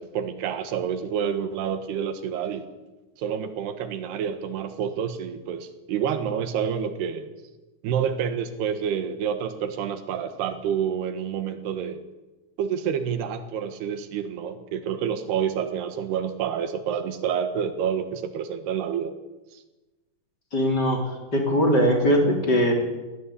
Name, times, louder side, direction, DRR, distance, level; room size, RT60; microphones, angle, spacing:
voice 1, 0.0-2.7 3.2-7.3 7.8-12.0 12.6-19.1 19.5-19.6, right 8 dB, 90° right, 9 dB, 3.6 m, -28 dB
voice 2, 20.5-22.7, equal, 25° left, 1 dB, 3.9 m, -21 dB
20.0 x 19.0 x 8.5 m, 1.1 s
omnidirectional pair, 4.5 m